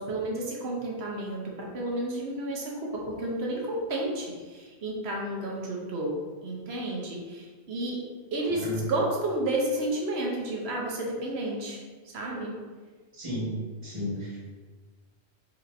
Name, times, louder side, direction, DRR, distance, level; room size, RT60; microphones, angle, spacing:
voice 1, 0.0-6.1 6.4-8.0 8.3-11.8 12.1-12.5, right 1 dB, 75° right, -2 dB, 1.0 m, -31 dB
voice 2, 13.1-13.5 13.8-14.4, left 1 dB, 30° right, -7 dB, 1.2 m, -33 dB
4.4 x 2.9 x 2.5 m, 1.4 s
omnidirectional pair, 1.1 m